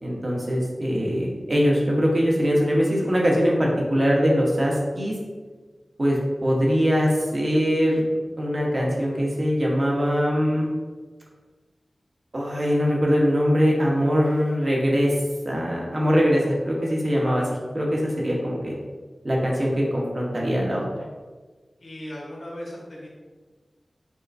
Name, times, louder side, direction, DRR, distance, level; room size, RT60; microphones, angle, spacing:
voice 1, 0.0-5.1 6.0-8.1 8.4-10.7 12.3-15.1 15.4-18.7 19.2-20.9, equal, 50° right, -2 dB, 1.0 m, -22 dB
voice 2, 21.8-23.1, equal, 85° left, -4 dB, 1.1 m, -37 dB
6.3 x 2.2 x 2.6 m, 1.4 s
cardioid pair, 45°, 0 cm